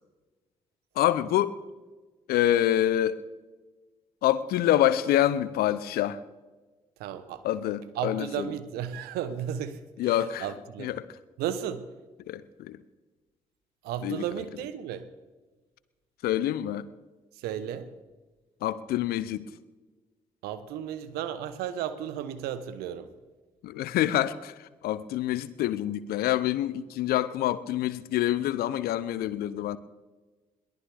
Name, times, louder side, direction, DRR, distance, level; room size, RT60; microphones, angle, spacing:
voice 1, 1.0-1.6 2.3-3.2 4.2-6.2 7.4-8.5 10.0-10.5 10.8-11.0 12.3-12.8 14.0-14.2 16.2-16.9 18.6-19.5 23.6-29.8, left 12 dB, 65° left, 0.8 m, -26 dB
voice 2, 7.0-7.4 7.9-11.0 11.4-11.8 13.8-15.1 17.4-17.9 20.4-23.1, right 9 dB, 70° right, 1.1 m, -34 dB
22.0 x 17.5 x 3.5 m
figure-of-eight pair, 40°, 17 cm